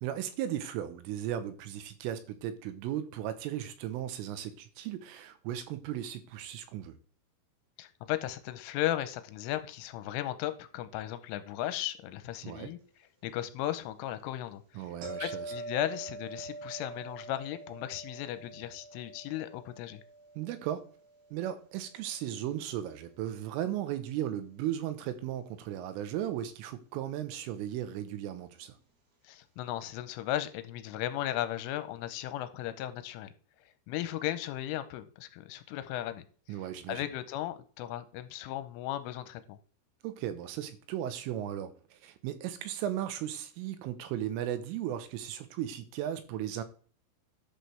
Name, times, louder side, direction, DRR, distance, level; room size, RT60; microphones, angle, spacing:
voice 1, 0.0-6.9 12.4-12.7 14.8-15.5 20.4-20.9 21.3-28.8 36.5-37.1 40.0-46.6, right 11 dB, 90° right, 3.4 m, -36 dB
voice 2, 7.8-12.8 13.2-14.9 15.2-20.0 29.2-33.3 33.9-36.6 36.9-39.6, left 13 dB, 85° left, 3.2 m, -36 dB
sound 1, 15.0-22.0 27.3-27.4, right 2 dB, 60° right, 5.2 m, -45 dB
11.0 x 7.8 x 3.3 m
omnidirectional pair, 5.8 m